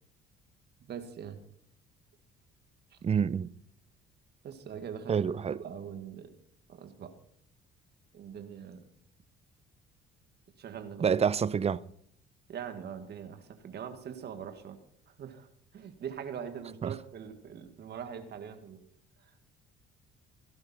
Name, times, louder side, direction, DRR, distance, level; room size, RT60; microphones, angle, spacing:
voice 1, 0.9-1.4 2.9-3.0 4.4-6.3 6.7-7.1 8.1-8.9 10.6-11.1 12.5-14.8 15.1-18.8 19.2-19.3, right 8 dB, 55° right, 2.0 m, -42 dB
voice 2, 3.0-3.5 5.1-5.6 11.0-11.8 16.8-16.9, right 7 dB, 30° right, 0.6 m, -27 dB
16.5 x 11.5 x 4.4 m
supercardioid pair, 70°, 20 cm